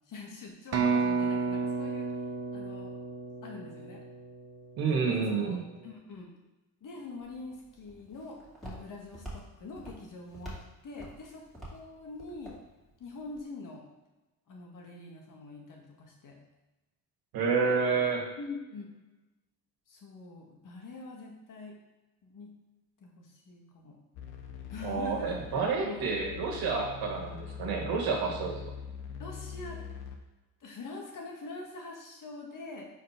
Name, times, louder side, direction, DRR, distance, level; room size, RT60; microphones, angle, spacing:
voice 1, 0.1-2.1 2.5-2.9 3.4-4.0 4.9-5.6 5.8-6.3 6.8-10.6 10.8-11.4 11.7-12.6 13.0-13.9 14.5-16.4 18.4-19.0 19.9-21.8 22.2-22.5 23.0-24.0 24.7-26.7 29.2-29.8 30.6-32.9, left 3 dB, 55° left, 0 dB, 1.8 m, -44 dB
sound 1, 0.7-4.5, right 4 dB, 40° right, 1.0 m, -31 dB
voice 2, 4.8-5.6 17.3-18.2 24.8-28.6, right 5 dB, 75° right, 0 dB, 1.9 m, -29 dB
Walk footsteps, 7.2-13.4, right 1 dB, ahead, 2.5 m, -48 dB
sound 2, 24.1-30.2, left 7 dB, 90° left, 1.0 m, -43 dB
5.0 x 4.5 x 5.9 m, 1.1 s
cardioid pair, 100°, 37 cm